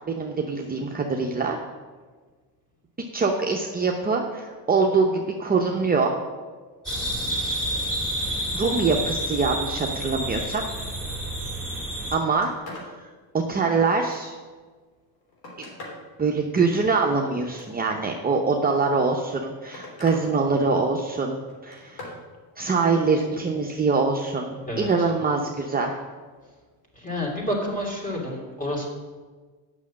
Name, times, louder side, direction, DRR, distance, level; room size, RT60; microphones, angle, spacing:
voice 1, 0.1-1.6 3.1-6.2 8.5-10.6 12.1-12.5 13.3-14.3 15.6-15.7 16.2-22.0 22.6-26.0, right 4 dB, 20° right, 1 dB, 0.8 m, -24 dB
sound 1, 6.9-12.2, right 1 dB, ahead, 3.1 m, -29 dB
Telephone, 11.7-11.8 12.1-12.9 13.4-14.5 15.1-16.1 17.3-18.1 19.1-20.3 20.6-21.1 21.5-22.2 24.7-25.0 26.4-26.5, left 2 dB, 55° left, 3.3 m, -43 dB
voice 2, 24.6-25.1 26.9-28.9, left 1 dB, 20° left, -3 dB, 3.0 m, -29 dB
8.4 x 6.2 x 7.4 m, 1.4 s
cardioid pair, 100°, 45 cm